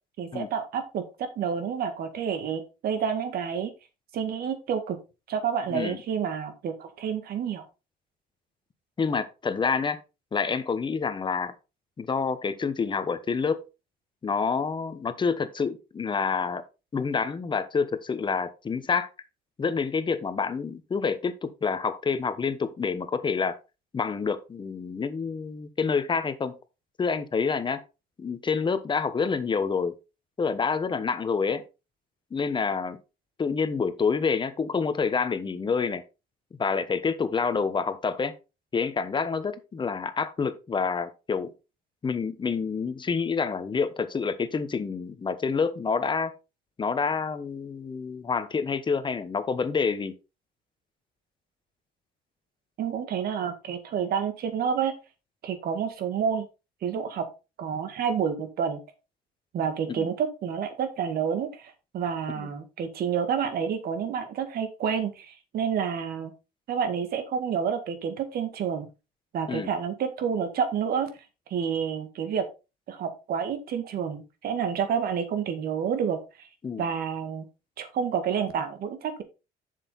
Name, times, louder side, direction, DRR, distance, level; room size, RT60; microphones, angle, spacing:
voice 1, 0.2-1.0 1.4-3.7 4.1-5.0 5.3-7.6 52.8-54.9 55.4-56.5 56.8-57.2 57.6-58.8 59.5-66.3 66.7-68.9 69.3-71.1 71.5-72.4 72.9-76.5 76.8-77.5 77.8-79.2, right 7 dB, 65° right, 2.1 m, -29 dB
voice 2, 9.0-10.0 10.3-11.5 12.0-13.6 14.2-16.6 16.9-19.1 19.6-23.5 23.9-26.6 27.0-27.8 28.2-29.9 30.4-31.6 32.3-33.0 33.4-36.0 36.6-38.3 38.7-41.5 42.0-46.3 46.8-50.1 59.9-60.1 62.3-62.5 69.5-69.7 76.6-76.8, left 5 dB, 30° left, 1.1 m, -28 dB
7.4 x 6.6 x 4.1 m
cardioid pair, 110°, 17 cm